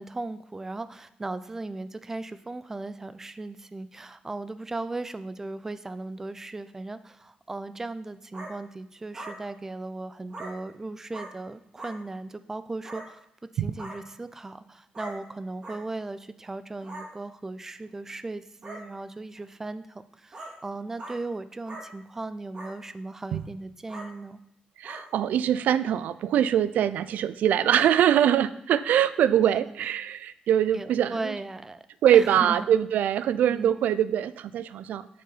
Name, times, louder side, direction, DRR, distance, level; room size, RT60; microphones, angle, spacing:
voice 1, 0.0-24.4 29.4-29.8 30.7-31.8 32.1-32.7 33.5-33.8, right 2 dB, 15° right, 13 dB, 0.5 m, -37 dB
sound 1, 8.3-8.5 9.1-9.3 10.3-10.5 11.1-11.3 11.8-11.9 12.8-13.0 13.7-14.0 14.9-15.1 15.6-15.8 16.8-17.0 17.9-18.0 18.6-18.8 19.4-19.5 20.3-20.5 21.0-21.2 21.7-21.8 22.5-22.7 23.2-23.4 23.9-24.1 24.8-25.0, right 2 dB, 35° right, 3.3 m, -40 dB
voice 2, 24.8-31.3 32.0-35.1, right 10 dB, 80° right, 15 dB, 0.4 m, -23 dB
10.5 x 6.6 x 4.1 m, 0.77 s
wide cardioid pair, 155°, 3 cm